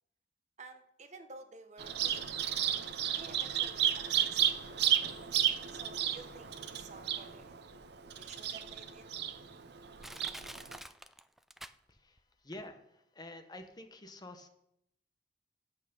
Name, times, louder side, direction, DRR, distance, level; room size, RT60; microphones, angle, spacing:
voice 1, 0.6-2.5 3.1-4.6 5.7-7.9 8.2-9.1, right 3 dB, 40° right, 7 dB, 1.0 m, -53 dB
Bird vocalization bird call bird song, 1.8-10.8, right 10 dB, 65° right, 0.7 m, -33 dB
Crushing, 7.9-8.0 8.7-8.8 9.4-9.5 10.0-12.2 12.5-12.6, right 1 dB, ahead, 0.3 m, -48 dB
voice 2, 11.9-14.5, left 1 dB, 25° left, 7 dB, 0.9 m, -49 dB
8.7 x 8.2 x 5.4 m, 0.78 s
head